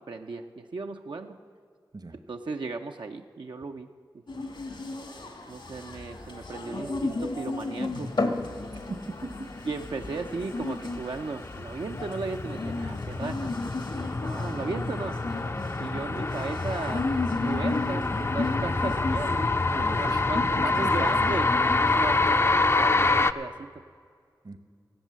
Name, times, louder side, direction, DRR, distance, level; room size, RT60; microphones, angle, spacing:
voice 1, 0.1-1.4 2.3-3.9 4.9-5.0 5.5-8.1 9.7-13.5 13.9-15.2 15.8-17.1 17.4-19.6 20.0-21.5 21.8-23.8, right 3 dB, 70° right, 4 dB, 0.6 m, -36 dB
sound 1, 4.3-22.4, left 3 dB, 80° left, 2.1 m, -35 dB
sound 2, 8.2-21.7, left 2 dB, 65° left, 1.0 m, -40 dB
voice 2, 9.1-9.5 19.7-20.3 20.6-21.1 24.4-24.6, right 2 dB, 55° right, 10 dB, 0.9 m, -38 dB
sound 3, 10.5-23.3, left 3 dB, 30° left, 0.4 m, -27 dB
16.5 x 7.3 x 7.5 m, 2.2 s
cardioid pair, 50°, 8 cm